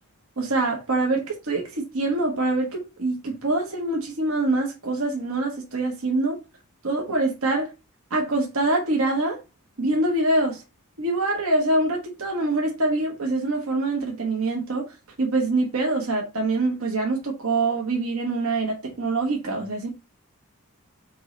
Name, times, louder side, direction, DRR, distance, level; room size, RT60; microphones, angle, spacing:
voice 1, 0.4-6.4 6.8-7.7 8.1-9.4 9.8-10.6 11.0-19.9, right 2 dB, 70° right, 1.0 m, -25 dB
4.5 x 3.1 x 3.8 m
head